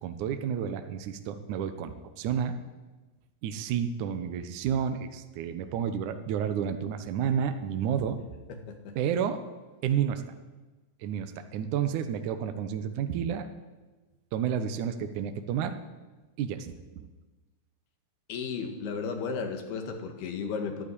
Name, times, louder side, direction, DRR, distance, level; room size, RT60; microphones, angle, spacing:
voice 1, 0.0-2.6 3.4-8.2 9.0-9.4 9.8-10.2 11.0-13.5 14.3-15.8 16.4-17.1, right 8 dB, 70° right, 8 dB, 2.0 m, -30 dB
voice 2, 18.3-20.8, left 5 dB, 80° left, 5 dB, 3.7 m, -34 dB
12.0 x 11.0 x 10.0 m, 1.2 s
omnidirectional pair, 4.4 m